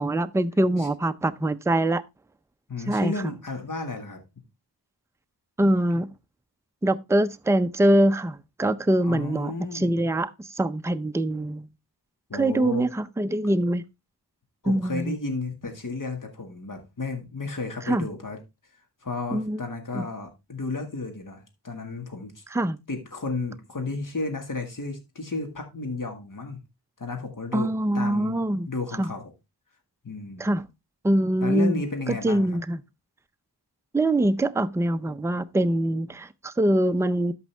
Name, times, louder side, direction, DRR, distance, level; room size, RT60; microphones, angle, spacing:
voice 1, 0.0-2.0 2.9-3.1 5.6-6.1 6.8-10.3 10.6-11.7 12.3-13.8 14.7-15.1 17.9-18.1 19.3-19.6 19.9-20.0 22.5-22.8 27.5-28.7 29.0-29.1 30.4-30.6 31.0-32.8 33.9-37.3, right 1 dB, 5° right, 0.5 m, -23 dB
voice 2, 2.7-4.2 9.0-9.9 12.3-12.9 14.6-18.4 19.0-22.4 22.9-26.6 27.0-29.3 30.0-30.5 31.4-32.6, left 3 dB, 50° left, 1.9 m, -33 dB
12.5 x 5.4 x 3.4 m
wide cardioid pair, 60°, 41 cm